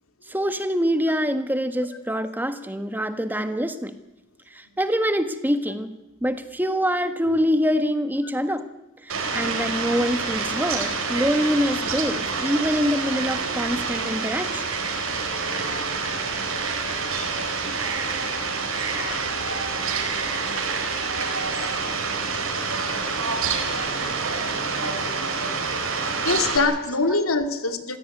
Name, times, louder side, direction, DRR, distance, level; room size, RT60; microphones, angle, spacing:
voice 1, 0.3-3.9 4.5-8.7 9.0-14.7 27.1-27.2, equal, 10° right, 1.4 m, -25 dB
Fowl, 9.1-26.6, right 4 dB, 85° right, 5.0 m, -27 dB
voice 2, 18.5-19.3 24.0-24.2 26.2-28.0, left 3 dB, 90° left, 2.5 m, -25 dB
25.0 x 16.0 x 9.7 m
head